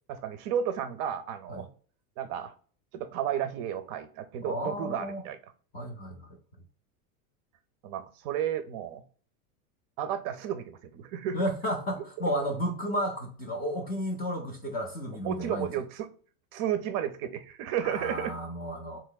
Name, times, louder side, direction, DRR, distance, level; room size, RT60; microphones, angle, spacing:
voice 1, 0.1-1.7 2.2-2.5 2.9-5.4 7.8-9.0 10.0-11.4 15.2-16.1 16.5-18.3, right 9 dB, 45° right, 0.5 m, -32 dB
voice 2, 4.4-5.2 5.7-6.3 11.3-15.7 17.8-19.0, equal, 20° left, 0.3 m, -32 dB
3.6 x 2.9 x 2.2 m
supercardioid pair, 135°, 45 cm